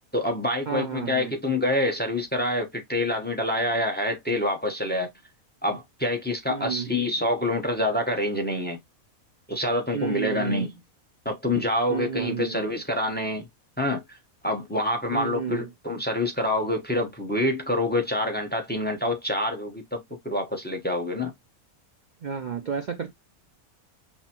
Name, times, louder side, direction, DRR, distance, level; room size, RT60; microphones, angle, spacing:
voice 1, 0.1-5.1 5.6-8.8 9.5-10.7 11.2-13.5 13.8-14.2 14.4-21.3, left 1 dB, 10° left, 0.6 m, -26 dB
voice 2, 0.7-1.3 6.5-7.0 9.9-10.7 11.9-12.6 15.1-15.7 22.2-23.1, right 7 dB, 80° right, 0.4 m, -31 dB
5.7 x 2.0 x 2.8 m
omnidirectional pair, 1.5 m